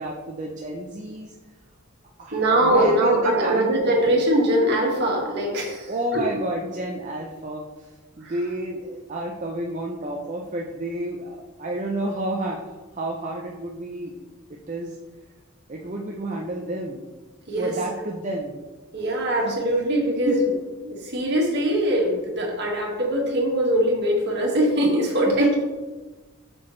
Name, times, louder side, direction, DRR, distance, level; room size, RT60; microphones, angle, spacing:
voice 1, 0.0-1.3 2.2-3.7 5.9-12.6 12.9-14.2 14.5-15.0 15.7-17.0 17.6-18.6 19.4-19.5 20.3-20.4 25.4-25.5, right 1 dB, 35° right, -1 dB, 0.6 m, -30 dB
voice 2, 2.3-6.2 8.2-8.3 17.5-17.7 18.9-20.4 20.8-25.6, right 1 dB, 50° right, -1 dB, 1.8 m, -22 dB
8.1 x 6.2 x 3.2 m, 1.2 s
head